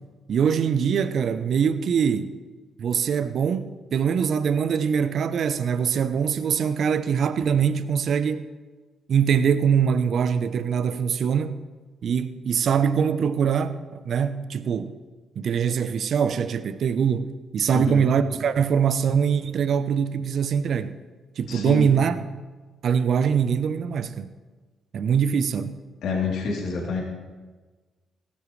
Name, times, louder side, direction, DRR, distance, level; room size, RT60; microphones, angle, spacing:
voice 1, 0.3-2.3 2.8-8.5 9.1-11.6 12.0-15.0 15.4-21.0 21.4-22.2 22.8-24.3 24.9-25.8, right 7 dB, 60° right, 0.8 m, -23 dB
voice 2, 21.5-21.9 26.0-27.0, left 3 dB, 70° left, 3.4 m, -27 dB
18.5 x 15.0 x 3.3 m
hypercardioid pair, 45°, 0 cm